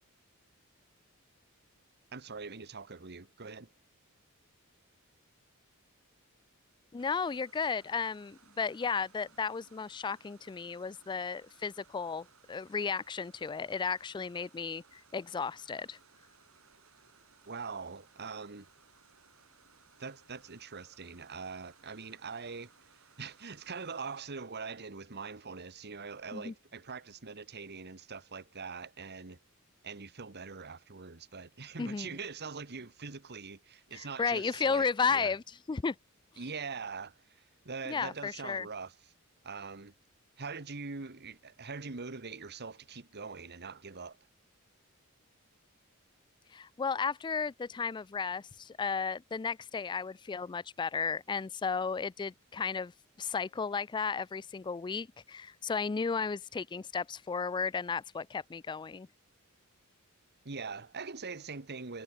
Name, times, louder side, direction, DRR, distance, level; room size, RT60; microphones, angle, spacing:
voice 1, 2.1-3.7 17.5-18.7 20.0-29.4 29.8-35.3 36.4-38.9 39.4-39.9 40.4-44.2 60.4-62.0, right 4 dB, 50° right, 1.4 m, -43 dB
voice 2, 6.9-16.0 26.3-26.5 31.8-32.1 33.9-35.4 35.7-36.0 37.9-38.7 46.5-52.9 53.2-59.1, left 5 dB, 20° left, 0.3 m, -34 dB
sound 1, 7.0-24.2, right 6 dB, 70° right, 6.3 m, -63 dB
head